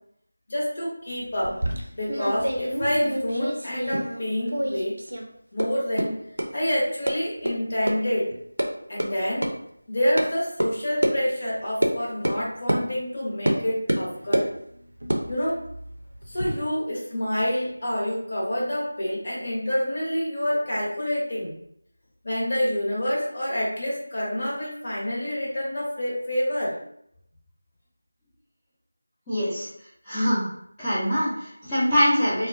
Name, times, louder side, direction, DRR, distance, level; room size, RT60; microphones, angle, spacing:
voice 1, 0.5-1.6 1.9-5.0 5.5-8.3 8.9-9.5 9.9-14.5 15.3-15.6 16.3-21.5 22.2-26.7, equal, 45° left, -5 dB, 0.9 m, -27 dB
sound 1, 1.4-4.2 4.5-5.2 5.6-5.7 6.0-6.1 6.4-6.5 7.1-7.2 7.4-7.5 7.9-8.0 8.3-8.7 9.0-9.1 9.4-9.5 10.2-10.3 10.6-10.7 11.0-11.1 11.8-11.9 12.2-12.4 12.7-12.8 13.4-13.6 13.9-14.5 15.0-16.5, right 1 dB, 85° right, 0.5 m, -26 dB
voice 2, 29.3-29.7 30.1-30.5 30.8-32.5, equal, 10° left, -14 dB, 0.6 m, -23 dB
2.7 x 2.2 x 2.5 m, 0.72 s
figure-of-eight pair, 170°, 0 cm